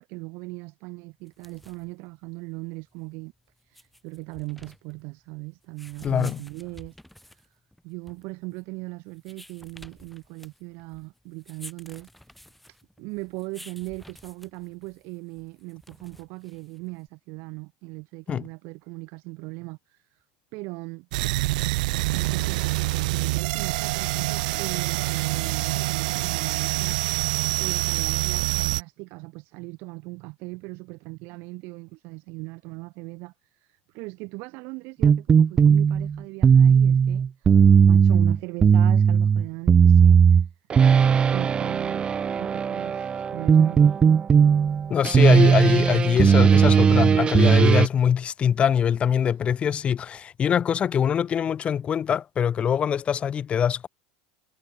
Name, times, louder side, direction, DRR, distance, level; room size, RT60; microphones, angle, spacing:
voice 1, 0.0-3.3 3.6-7.4 7.8-12.1 12.7-20.2 20.5-21.1 22.1-40.5 40.9-41.0 41.3-44.0 49.2-49.3, right 27 dB, 60° right, 2.4 m, -39 dB
sound 1, 1.2-17.1, left 1 dB, ahead, 6.5 m, -51 dB
voice 2, 6.0-6.4 18.3-18.4 44.9-53.9, left 8 dB, 25° left, 1.2 m, -23 dB
sound 2, 21.1-28.8, right 21 dB, 75° right, 0.6 m, -26 dB
sound 3, 35.0-47.9, right 7 dB, 20° right, 0.5 m, -17 dB
supercardioid pair, 125°, 4 cm